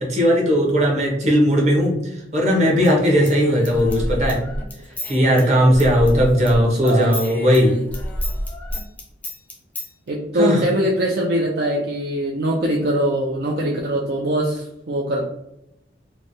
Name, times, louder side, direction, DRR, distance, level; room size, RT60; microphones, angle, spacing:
voice 1, 0.0-2.0 2.3-4.4 5.1-7.8 10.3-10.6, equal, 40° right, -2 dB, 0.9 m, -17 dB
Human voice / Scissors, 2.8-6.6 6.9-9.9, equal, 10° left, 0.5 m, -30 dB
voice 2, 6.8-7.2 10.1-15.3, right 1 dB, 60° right, 0 dB, 0.4 m, -22 dB
3.1 x 2.2 x 2.7 m, 0.84 s
head